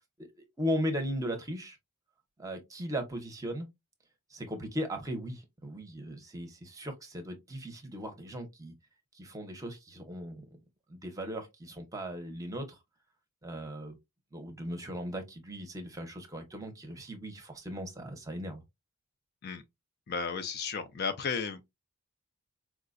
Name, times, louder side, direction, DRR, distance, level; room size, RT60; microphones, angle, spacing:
voice 1, 0.6-1.8 2.4-3.7 4.3-8.7 9.1-10.6 10.9-12.8 13.4-14.0 14.3-18.6, equal, 15° right, 0.7 m, -37 dB
voice 2, 20.1-21.6, left 5 dB, 45° left, 0.4 m, -34 dB
4.6 x 2.2 x 2.4 m
head